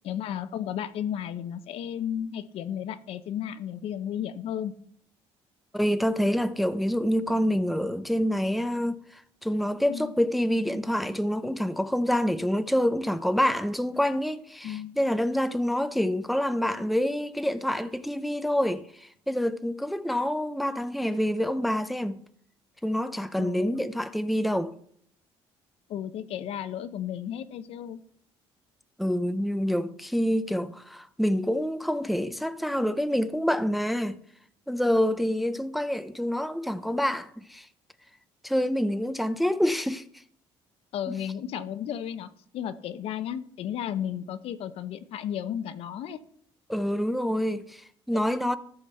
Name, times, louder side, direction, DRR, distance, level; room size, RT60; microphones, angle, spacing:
voice 1, 0.0-4.7 9.9-10.1 14.6-15.0 23.3-23.8 25.9-28.0 40.9-46.2, left 9 dB, 65° left, 0.8 m, -33 dB
voice 2, 5.7-22.2 22.8-24.7 29.0-34.2 34.7-37.7 38.4-40.0 41.1-41.2 46.7-48.6, equal, ahead, 0.5 m, -27 dB
14.0 x 5.8 x 4.4 m
cardioid pair, 115°, 11 cm